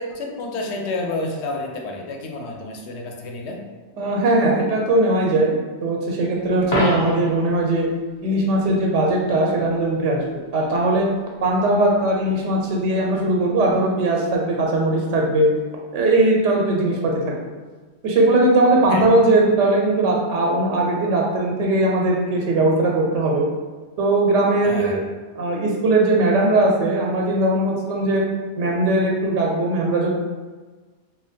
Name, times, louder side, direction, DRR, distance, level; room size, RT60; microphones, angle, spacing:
voice 1, 0.0-3.6 18.9-19.1 24.6-25.0, left 2 dB, 70° left, 1 dB, 0.8 m, -29 dB
voice 2, 4.0-5.5 5.8-7.9 8.2-10.2 10.5-11.1 11.4-15.5 15.9-17.2 18.0-23.4 24.0-25.0 25.4-28.2 28.6-30.1, right 2 dB, 90° right, -1 dB, 0.9 m, -19 dB
Coin (dropping), 6.6-7.5 13.6-13.7, left 1 dB, 40° left, 0.8 m, -25 dB
2.9 x 2.2 x 4.1 m, 1.4 s
omnidirectional pair, 1.2 m